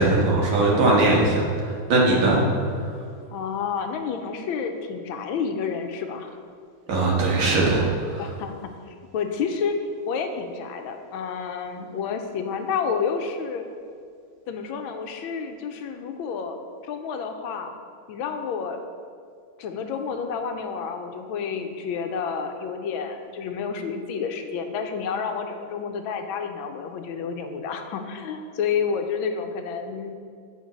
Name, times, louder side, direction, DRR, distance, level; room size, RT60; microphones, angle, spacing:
voice 1, 0.0-2.4 2.8-2.9 6.9-8.2, right 2 dB, 90° right, -3 dB, 2.2 m, -20 dB
voice 2, 3.3-6.4 8.2-9.7 10.1-13.7 14.5-16.6 16.8-17.7 18.1-18.8 19.6-30.2, left 6 dB, 85° left, 6 dB, 1.4 m, -30 dB
7.9 x 4.5 x 5.2 m, 2.2 s
omnidirectional pair, 2.2 m